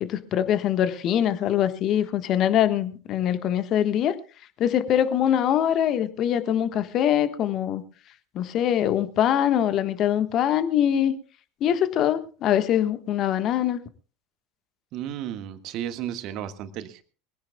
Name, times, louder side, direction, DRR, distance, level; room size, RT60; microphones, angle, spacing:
voice 1, 0.0-4.2 4.6-7.8 8.3-11.1 11.6-13.8, left 10 dB, 45° left, 1.3 m, -23 dB
voice 2, 14.9-17.0, right 10 dB, 50° right, 1.5 m, -33 dB
23.0 x 15.5 x 2.3 m
figure-of-eight pair, 75°, 0 cm